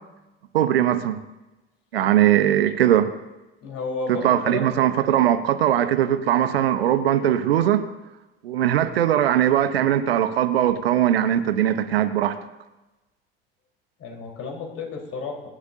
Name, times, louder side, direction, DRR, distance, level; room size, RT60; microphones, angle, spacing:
voice 1, 0.5-1.2 1.9-3.1 4.1-7.9 8.4-12.3, right 11 dB, 80° right, 10 dB, 1.0 m, -20 dB
voice 2, 3.6-4.7 14.0-15.5, left 4 dB, 50° left, 0 dB, 4.2 m, -32 dB
25.0 x 11.5 x 2.8 m, 1.0 s
hypercardioid pair, 65°, 30 cm